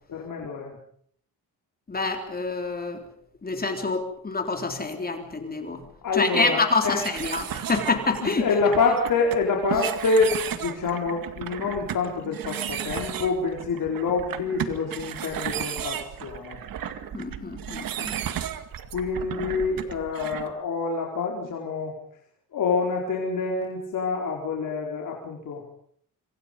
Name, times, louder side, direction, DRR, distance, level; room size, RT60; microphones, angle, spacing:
voice 1, 0.1-0.8 6.0-7.0 8.2-16.6 18.9-22.0 22.5-25.7, left 4 dB, 60° left, 0 dB, 4.6 m, -26 dB
voice 2, 1.9-3.0 3.4-5.8 6.1-8.4 17.1-18.2, left 3 dB, 25° left, 5 dB, 3.5 m, -27 dB
sound 1, 7.0-20.5, right 9 dB, 70° right, 2.1 m, -34 dB
26.5 x 25.5 x 5.4 m, 0.63 s
cardioid pair, 125°, 35 cm